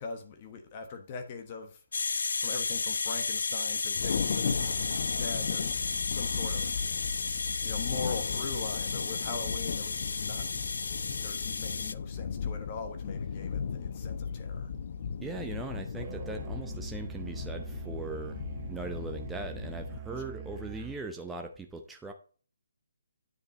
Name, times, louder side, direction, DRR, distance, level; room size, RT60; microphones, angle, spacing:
voice 1, 0.0-1.8 2.4-6.9 7.6-10.5 11.2-14.7 20.1-20.2, left 5 dB, 30° left, 1.3 m, -41 dB
sound 1, 1.9-11.9, left 4 dB, 65° left, 0.5 m, -33 dB
Thunder, 3.9-20.0, left 6 dB, 50° left, 0.8 m, -36 dB
voice 2, 15.2-22.1, right 3 dB, 5° right, 0.7 m, -40 dB
Musical instrument, 15.9-21.1, right 9 dB, 30° right, 1.0 m, -43 dB
9.9 x 5.3 x 4.1 m
figure-of-eight pair, 145°, 0 cm